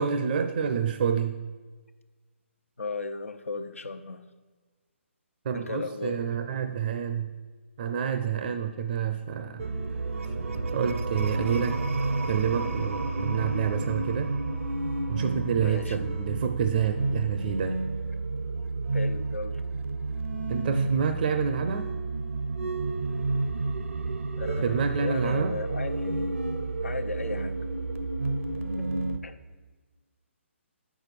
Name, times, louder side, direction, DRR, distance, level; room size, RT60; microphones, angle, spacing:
voice 1, 0.0-1.4 5.4-7.3 7.8-9.7 10.7-11.8 12.3-14.3 15.1-17.8 20.5-21.9 24.6-25.6, right 7 dB, 45° right, 8 dB, 0.5 m, -28 dB
voice 2, 2.8-4.3 5.5-6.2 15.6-16.0 18.9-19.6 24.4-26.4 26.8-27.6 28.7-28.9 29.2-29.4, left 3 dB, 85° left, 9 dB, 0.7 m, -35 dB
sound 1, 9.6-29.2, right 3 dB, 80° right, 0.9 m, -30 dB
7.7 x 6.2 x 6.8 m, 1.4 s
figure-of-eight pair, 145°, 7 cm